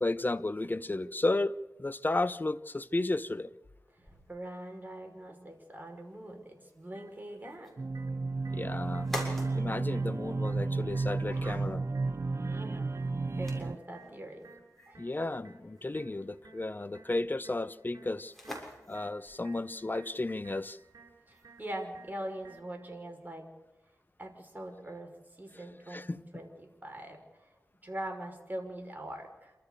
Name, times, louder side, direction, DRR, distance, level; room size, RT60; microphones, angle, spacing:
voice 1, 0.0-3.5 8.5-9.1 9.6-11.8 15.0-18.3 18.9-20.8 25.5-26.2, left 2 dB, 30° left, 0.9 m, -33 dB
sound 1, 4.0-22.5, equal, 5° left, 7.0 m, -49 dB
voice 2, 4.0-7.8 11.3-11.6 12.5-12.9 13.4-14.5 14.9-15.2 21.3-23.5 24.2-27.5 27.8-29.5, right 1 dB, 30° right, 5.7 m, -43 dB
sound 2, 6.9-22.9, right 4 dB, 75° right, 5.2 m, -59 dB
sound 3, 7.8-13.8, right 3 dB, 45° right, 0.6 m, -32 dB
28.0 x 13.5 x 6.8 m
wide cardioid pair, 60°, 6 cm